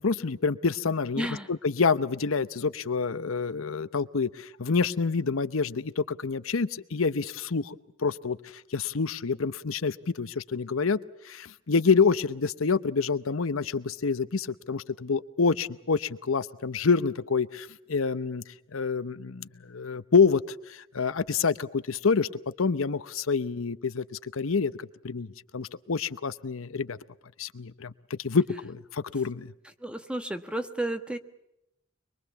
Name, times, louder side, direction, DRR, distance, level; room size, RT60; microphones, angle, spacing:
voice 1, 0.0-11.0 11.2-18.4 18.7-20.4 20.7-22.3 22.6-27.0 27.4-29.5, left 5 dB, 75° left, 14 dB, 0.8 m, -27 dB
voice 2, 1.2-1.5 29.8-31.2, right 1 dB, 5° right, 8 dB, 1.3 m, -32 dB
24.5 x 23.0 x 7.0 m, 0.84 s
head